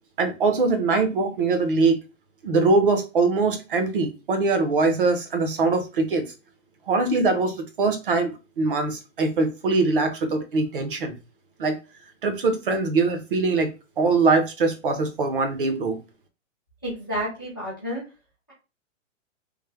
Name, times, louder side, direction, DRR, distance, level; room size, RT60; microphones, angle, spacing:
voice 1, 0.2-2.0 2.4-6.3 6.9-11.1 11.6-11.8 12.2-13.7 14.0-16.0, right 3 dB, 45° right, 7 dB, 0.7 m, -22 dB
voice 2, 16.8-18.0, equal, 20° left, -5 dB, 0.4 m, -30 dB
3.3 x 2.0 x 3.3 m, 0.29 s
hypercardioid pair, 175°, 38 cm